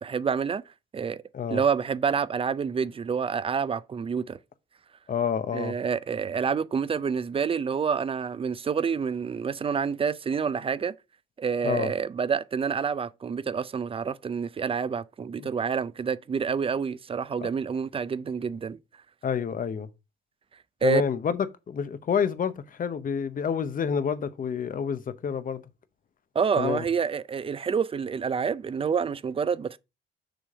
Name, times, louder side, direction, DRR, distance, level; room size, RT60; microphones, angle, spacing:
voice 1, 0.0-0.6 0.9-1.2 1.5-4.4 5.5-10.9 11.4-18.8 20.8-21.0 26.3-29.8, right 6 dB, 30° right, 0.4 m, -28 dB
voice 2, 5.1-5.7 11.6-11.9 15.4-15.5 17.4-17.5 19.2-19.9 20.8-25.6 26.6-26.8, left 7 dB, 45° left, 0.8 m, -28 dB
6.1 x 3.3 x 5.1 m
cardioid pair, 90°, 20 cm